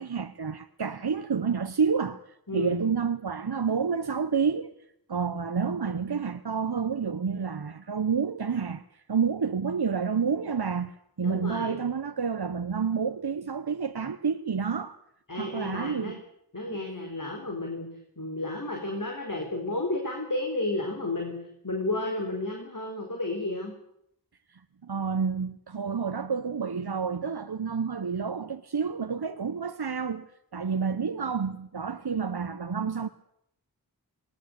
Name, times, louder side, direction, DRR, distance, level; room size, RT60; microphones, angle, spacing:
voice 1, 0.0-2.2 2.5-4.7 5.1-15.0 15.4-16.2 16.7-16.8 24.5-33.1, right 6 dB, 80° right, 0.9 m, -29 dB
voice 2, 11.2-11.8 15.3-16.2 16.5-17.9 18.2-21.4 21.6-23.7, left 2 dB, 55° left, 4.6 m, -32 dB
20.0 x 19.0 x 8.2 m
wide cardioid pair, 40°, 38 cm